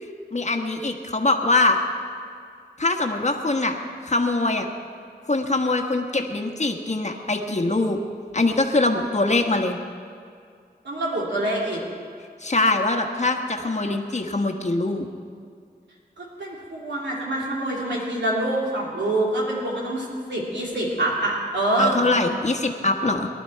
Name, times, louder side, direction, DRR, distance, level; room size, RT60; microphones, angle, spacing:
voice 1, 0.3-1.8 2.8-3.7 4.0-4.7 5.3-8.0 8.3-9.8 12.4-15.1 21.8-23.3, left 2 dB, 40° left, 3 dB, 1.3 m, -23 dB
voice 2, 10.8-11.8 16.2-22.0, right 1 dB, 90° right, -4 dB, 3.0 m, -26 dB
19.0 x 11.5 x 4.6 m, 2.3 s
wide cardioid pair, 50°, 18 cm